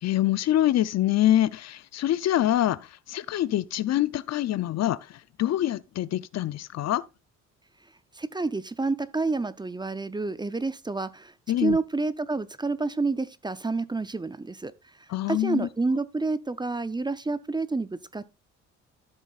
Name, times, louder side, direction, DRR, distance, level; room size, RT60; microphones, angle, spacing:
voice 1, 0.0-7.0 11.5-11.8 15.1-15.7, left 13 dB, 60° left, 0.5 m, -25 dB
voice 2, 8.2-11.3 11.6-14.7 15.3-18.3, right 3 dB, 15° right, 0.5 m, -29 dB
13.0 x 7.3 x 2.4 m
cardioid pair, 90°, 30 cm